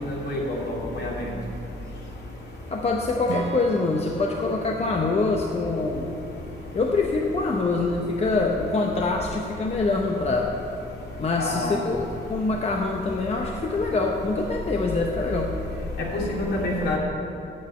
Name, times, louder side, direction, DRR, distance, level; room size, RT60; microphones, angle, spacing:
voice 1, 0.1-1.2 11.4-11.8 16.1-17.0, left 1 dB, 60° left, -2 dB, 2.7 m, -27 dB
voice 2, 2.7-6.2 6.7-10.5 11.2-12.0 12.3-15.6, left 3 dB, 35° left, 1 dB, 0.8 m, -25 dB
Acoustic guitar / Strum, 3.3-6.8, right 4 dB, 80° right, 1.1 m, -39 dB
8.8 x 7.4 x 8.8 m, 2.9 s
cardioid pair, 120°, 19 cm